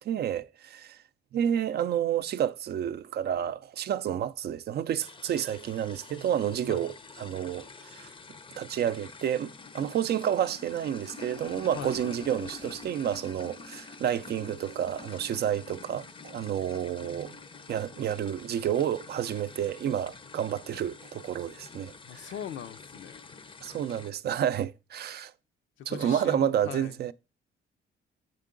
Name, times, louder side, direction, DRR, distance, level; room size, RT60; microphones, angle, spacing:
voice 1, 0.0-1.0 1.3-8.1 8.6-17.4 17.7-22.3 23.6-25.3 25.9-27.1, right 10 dB, 55° right, 0.4 m, -30 dB
sound 1, 5.0-24.1, left 4 dB, 25° left, 0.5 m, -47 dB
voice 2, 22.0-23.3 25.8-26.9, left 9 dB, 75° left, 0.6 m, -40 dB
8.1 x 3.7 x 3.7 m
cardioid pair, 90°, 20 cm